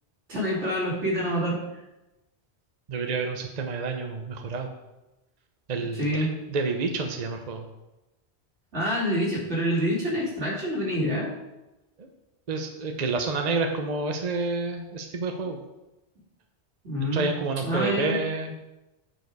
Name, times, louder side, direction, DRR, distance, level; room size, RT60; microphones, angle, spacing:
voice 1, 0.3-1.6 5.9-6.3 8.7-11.3 16.8-17.3 17.6-18.2, equal, 90° right, -5 dB, 2.9 m, -26 dB
voice 2, 2.9-4.7 5.7-7.7 12.0-12.1 12.5-15.6 17.0-18.5, right 3 dB, 40° right, 4 dB, 0.8 m, -29 dB
9.3 x 4.7 x 4.6 m, 0.98 s
omnidirectional pair, 1.1 m